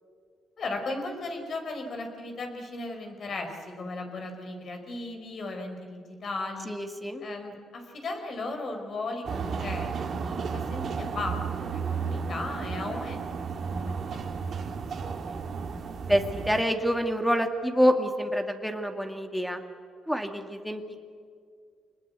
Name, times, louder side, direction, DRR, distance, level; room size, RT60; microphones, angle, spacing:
voice 1, 0.6-6.7 7.2-14.2 15.0-15.4, left 2 dB, 50° left, 4 dB, 4.8 m, -36 dB
voice 2, 6.7-7.2 16.1-19.6 20.1-21.0, equal, ahead, 5 dB, 2.1 m, -27 dB
sound 1, 9.2-16.6, right 5 dB, 55° right, 2.2 m, -33 dB
26.0 x 20.0 x 8.3 m, 2.2 s
cardioid pair, 90°, 0 cm